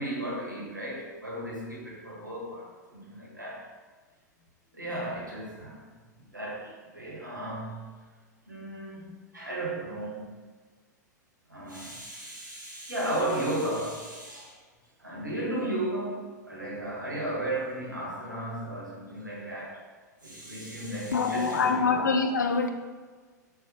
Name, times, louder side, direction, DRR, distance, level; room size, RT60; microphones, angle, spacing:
voice 1, 0.0-3.7 4.7-5.9 6.2-8.0 8.5-10.3 11.5-14.6 15.0-19.8 20.2-22.1, right 1 dB, 90° right, -4 dB, 1.1 m, -35 dB
voice 2, 21.1-22.7, left 5 dB, 80° left, 6 dB, 0.3 m, -25 dB
4.1 x 2.4 x 2.8 m, 1.4 s
figure-of-eight pair, 95°, 10 cm